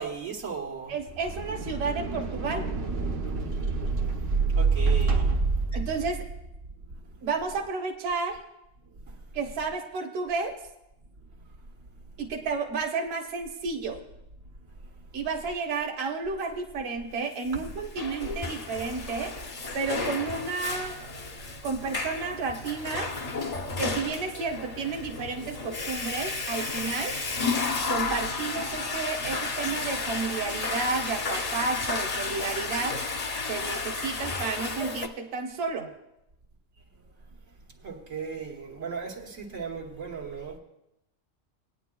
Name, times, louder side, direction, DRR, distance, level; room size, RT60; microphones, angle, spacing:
voice 1, 0.0-1.0 4.5-5.4 6.9-7.3 8.9-9.2 14.8-14.9 18.6-18.7 37.8-40.6, right 6 dB, 90° right, 1.7 m, -37 dB
voice 2, 0.9-2.6 5.7-6.2 7.2-8.3 9.3-10.5 12.2-14.0 15.1-19.3 19.7-20.9 21.6-23.1 23.8-27.1 27.9-32.9 33.5-35.9, right 4 dB, 55° right, 1.1 m, -31 dB
sound 1, 1.0-6.6, right 4 dB, 70° right, 1.3 m, -27 dB
Water / Toilet flush, 17.6-35.1, left 4 dB, 40° left, 0.6 m, -32 dB
19.0 x 9.4 x 2.3 m
omnidirectional pair, 1.3 m